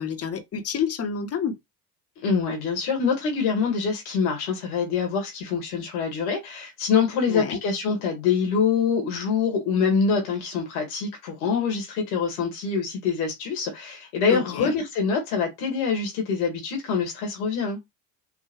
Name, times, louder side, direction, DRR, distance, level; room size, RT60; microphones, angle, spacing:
voice 1, 0.0-1.6 7.3-7.6 14.3-14.7, left 7 dB, 35° left, 0.9 m, -28 dB
voice 2, 2.2-17.8, left 5 dB, 80° left, 1.5 m, -25 dB
3.8 x 2.2 x 3.0 m
hypercardioid pair, 75°, 43 cm